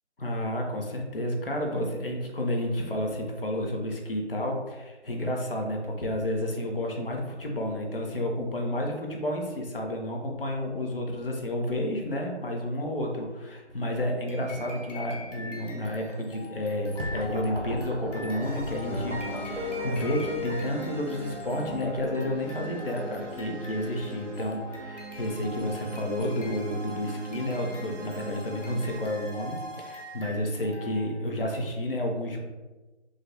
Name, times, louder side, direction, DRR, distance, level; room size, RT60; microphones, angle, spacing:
voice 1, 0.2-32.4, left 1 dB, 50° left, 1 dB, 0.5 m, -31 dB
sound 1, 14.3-31.3, left 1 dB, 90° left, 0.8 m, -44 dB
sound 2, 16.6-26.0, equal, 55° right, 0.5 m, -41 dB
sound 3, 18.4-30.3, equal, 85° right, 0.8 m, -39 dB
3.1 x 2.1 x 2.6 m, 1.2 s
figure-of-eight pair, 170°, 36 cm